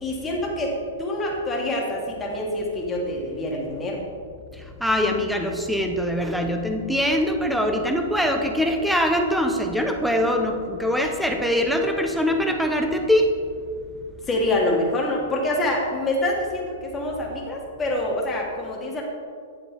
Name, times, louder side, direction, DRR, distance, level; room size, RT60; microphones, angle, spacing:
voice 1, 0.0-4.0 14.2-19.0, left 1 dB, 15° left, -2 dB, 1.7 m, -26 dB
voice 2, 4.8-13.3, equal, ahead, 3 dB, 0.8 m, -23 dB
9.8 x 7.6 x 3.8 m, 2.2 s
hypercardioid pair, 150°, 0 cm